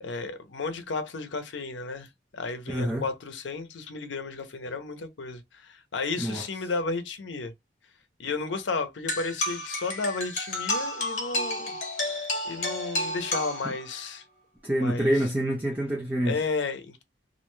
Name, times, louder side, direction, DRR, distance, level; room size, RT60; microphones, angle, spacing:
voice 1, 0.0-2.1 2.3-7.5 8.2-11.7 12.4-14.2 14.8-15.1 16.2-17.0, left 3 dB, 90° left, 0.6 m, -33 dB
voice 2, 2.7-3.0 6.2-6.4 13.6-13.7 14.6-16.4, right 1 dB, 10° right, 0.4 m, -26 dB
sound 1, 9.1-14.1, left 1 dB, 40° left, 1.0 m, -31 dB
2.4 x 2.1 x 3.0 m
head